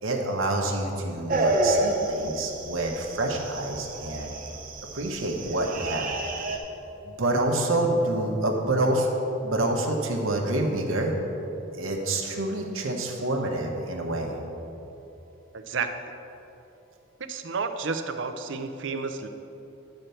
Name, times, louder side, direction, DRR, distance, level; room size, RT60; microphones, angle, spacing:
voice 1, 0.0-4.3 4.9-6.1 7.1-9.1 9.4-11.1 11.7-14.4, right 2 dB, 85° right, 1 dB, 1.0 m, -27 dB
sound 1, 1.3-6.6, right 2 dB, 40° right, 0.9 m, -29 dB
voice 2, 15.5-16.0 17.3-19.3, right 4 dB, 65° right, 8 dB, 0.6 m, -31 dB
10.5 x 4.4 x 6.8 m, 3.0 s
head